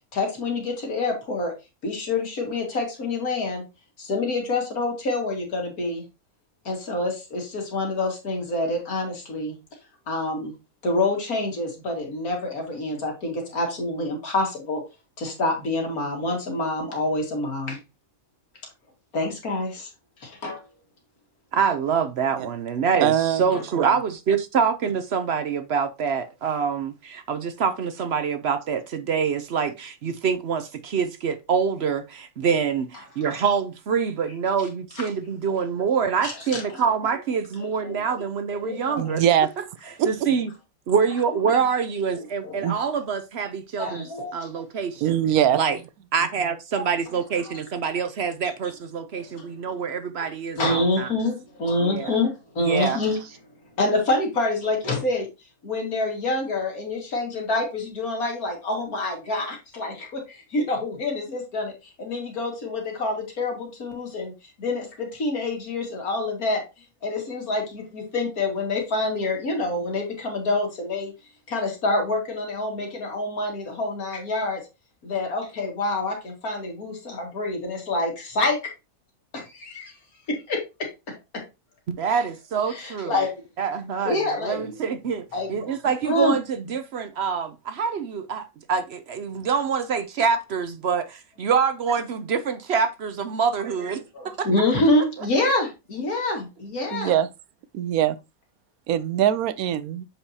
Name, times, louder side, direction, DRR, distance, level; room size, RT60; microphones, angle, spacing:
voice 1, 0.1-1.5 1.8-3.6 4.0-6.0 6.7-9.6 10.1-10.5 10.8-14.8 15.2-17.8 19.1-19.9 20.2-20.6 23.5-23.6 35.0-35.1 35.5-35.6 36.2-36.8 37.6-38.0 38.5-39.2 42.2-42.8 43.8-44.5 46.7-46.9 47.4-47.6 49.1-49.5 50.6-53.2 53.8-55.3 55.6-61.7 62.0-64.3 64.6-66.6 67.0-71.1 71.5-74.7 75.0-78.7 79.3-79.9 80.3-80.9 81.3-81.4 82.7-83.3 84.0-84.7 85.3-85.5 86.1-86.4 94.1-97.2, left 2 dB, 85° left, 2.5 m, -27 dB
voice 2, 21.5-39.2 40.0-40.5 40.9-45.2 45.5-45.8 46.1-51.1 51.8-52.1 52.6-53.0 81.9-83.2 83.6-85.2 85.5-94.7, right 6 dB, 60° right, 0.8 m, -26 dB
voice 3, 23.0-23.4 23.8-23.9 39.0-39.5 40.0-40.1 42.6-42.8 45.0-45.6 96.9-97.3 97.7-98.2 98.9-100.1, right 10 dB, 85° right, 1.1 m, -22 dB
7.1 x 5.1 x 2.8 m
omnidirectional pair, 1.5 m